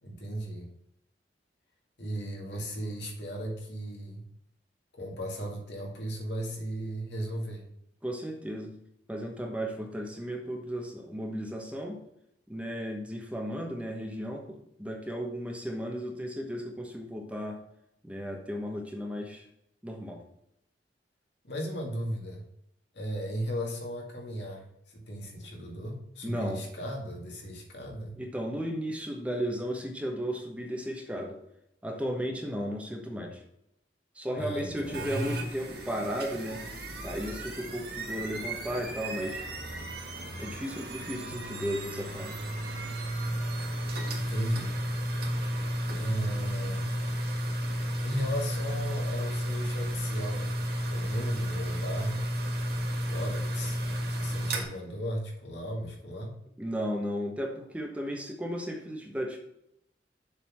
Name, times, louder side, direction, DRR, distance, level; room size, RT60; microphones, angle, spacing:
voice 1, 0.0-0.7 2.0-4.2 4.9-7.7 21.4-22.4 22.9-28.2 34.4-35.2 44.1-44.8 45.9-46.9 48.0-50.6 50.9-52.2 53.1-53.8 54.1-56.3, equal, 70° left, 0 dB, 2.1 m, -36 dB
voice 2, 8.0-8.7 9.1-12.0 12.5-17.6 18.0-19.4 19.8-20.2 26.2-26.6 28.2-31.4 31.8-33.4 34.1-36.6 37.0-39.4 40.4-42.3 56.6-59.4, equal, 5° right, 2 dB, 1.1 m, -35 dB
sound 1, 34.8-54.6, equal, 60° right, 1.8 m, -33 dB
7.2 x 4.1 x 6.1 m, 0.79 s
head